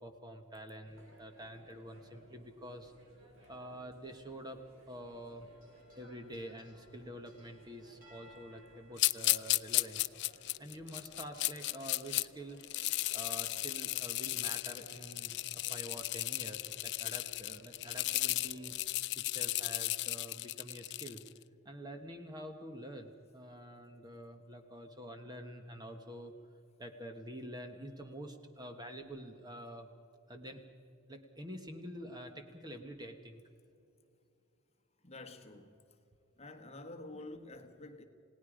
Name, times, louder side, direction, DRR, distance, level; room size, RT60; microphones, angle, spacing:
voice 1, 0.0-2.9 3.5-5.5 6.0-10.1 10.6-12.6 13.1-15.4 15.7-18.9 19.1-21.2 21.6-26.3 26.8-29.9 30.3-30.6 31.1-33.4, equal, 20° right, 1.2 m, -47 dB
sound 1, 0.8-19.0, right 1 dB, 65° right, 3.8 m, -61 dB
sound 2, 5.5-10.3 10.8-10.9 12.4-12.5 13.2-13.3 14.0-14.3, equal, 40° right, 6.5 m, -64 dB
sound 3, 9.0-12.2 12.6-21.3, left 18 dB, 50° left, 0.4 m, -35 dB
voice 2, 35.0-35.8 36.4-38.0, left 2 dB, 30° left, 1.4 m, -48 dB
29.0 x 18.0 x 5.1 m
head